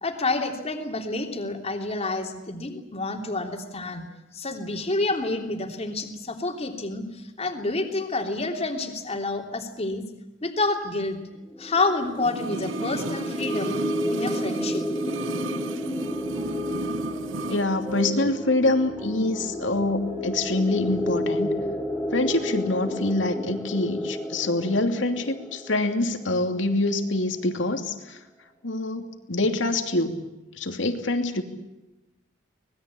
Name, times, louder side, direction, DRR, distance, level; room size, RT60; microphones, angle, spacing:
voice 1, 0.0-4.0 4.3-10.0 10.4-11.2 11.6-13.8 14.1-14.8, left 2 dB, 35° left, 4 dB, 3.2 m, -28 dB
sound 1, 11.4-27.1, equal, 5° left, 2.3 m, -32 dB
sound 2, 12.2-17.7 17.9-18.0, right 3 dB, 80° right, 0.9 m, -34 dB
sound 3, 15.8-23.2, right 2 dB, 30° right, 2.5 m, -41 dB
voice 2, 17.5-21.5 22.1-28.2 28.6-30.2 30.6-31.4, left 2 dB, 70° left, 6 dB, 2.8 m, -25 dB
25.0 x 20.5 x 8.6 m, 0.99 s
head